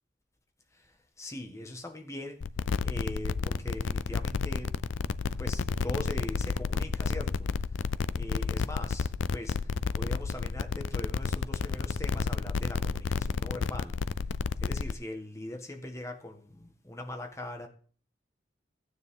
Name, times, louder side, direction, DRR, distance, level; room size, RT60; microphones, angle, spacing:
voice 1, 0.7-2.4 2.8-4.7 5.4-7.9 8.1-14.0 14.6-17.7, left 1 dB, 15° left, 1.5 m, -41 dB
sound 1, 2.4-14.9, left 5 dB, 90° left, 0.5 m, -31 dB
15.5 x 9.5 x 3.8 m
head